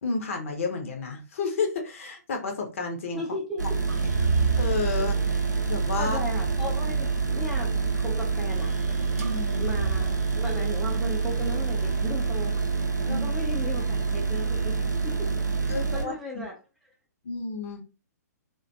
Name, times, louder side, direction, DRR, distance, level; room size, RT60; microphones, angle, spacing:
voice 1, 0.0-3.2 4.5-5.2 5.7-6.2 9.2-9.7 13.1-13.3 15.7-16.5 17.2-17.8, left 4 dB, 45° left, 0.6 m, -31 dB
voice 2, 3.1-3.8 6.0-8.7 9.6-12.6 13.0-15.3 15.6-16.6, left 1 dB, ahead, 0.4 m, -36 dB
sound 1, 3.6-16.1, right 4 dB, 85° right, 0.5 m, -27 dB
sound 2, 3.9-14.1 14.5-15.3, right 5 dB, 60° right, 0.7 m, -33 dB
2.4 x 2.2 x 2.6 m
figure-of-eight pair, 120°, 9 cm